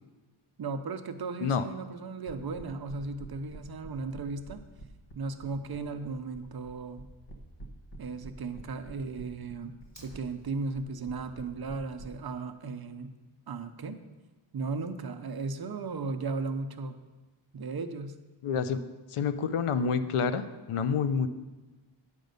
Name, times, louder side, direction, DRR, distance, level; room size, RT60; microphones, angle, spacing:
voice 1, 0.6-4.6 5.1-7.1 8.0-13.2 13.5-14.0 14.5-17.0 17.5-18.2, right 4 dB, 50° right, 8 dB, 0.7 m, -36 dB
sound 1, 2.3-12.1, right 1 dB, 50° left, 1.2 m, -46 dB
Fire, 9.8-10.8, left 1 dB, 35° left, 2.8 m, -55 dB
voice 2, 18.4-18.8 19.1-21.3, left 6 dB, 85° left, 11 dB, 0.7 m, -28 dB
9.2 x 5.3 x 6.6 m, 1.2 s
wide cardioid pair, 140°, 50 cm